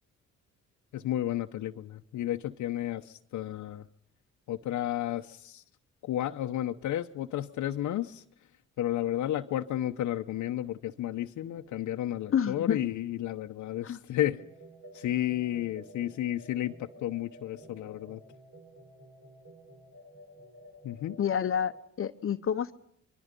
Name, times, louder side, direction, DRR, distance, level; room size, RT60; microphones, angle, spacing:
voice 1, 0.9-3.9 4.5-5.6 6.0-8.2 8.8-14.4 14.9-18.2 20.8-21.2, left 12 dB, 75° left, 5 dB, 0.9 m, -32 dB
voice 2, 12.3-12.8 13.8-14.0 21.2-21.7 22.0-22.7, left 8 dB, 45° left, 9 dB, 0.9 m, -28 dB
sound 1, 14.4-21.8, right 1 dB, 50° right, 4.9 m, -52 dB
25.0 x 23.0 x 5.3 m, 0.68 s
cardioid pair, 90°, 30 cm